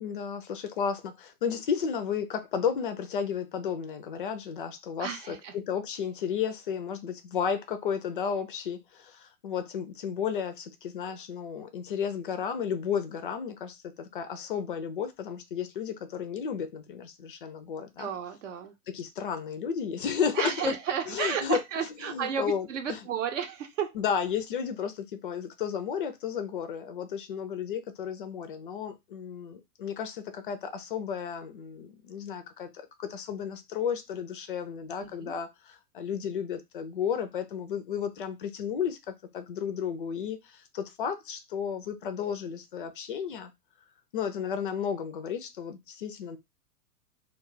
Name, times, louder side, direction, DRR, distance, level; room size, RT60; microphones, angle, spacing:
voice 1, 0.0-18.1 18.9-20.7 21.1-23.0 23.9-43.5 44.1-46.4, left 7 dB, 35° left, 0.4 m, -33 dB
voice 2, 5.0-5.5 18.0-18.7 20.3-24.0 35.0-35.3, right 7 dB, 50° right, 0.7 m, -32 dB
2.3 x 2.3 x 3.7 m
figure-of-eight pair, 110°, 47 cm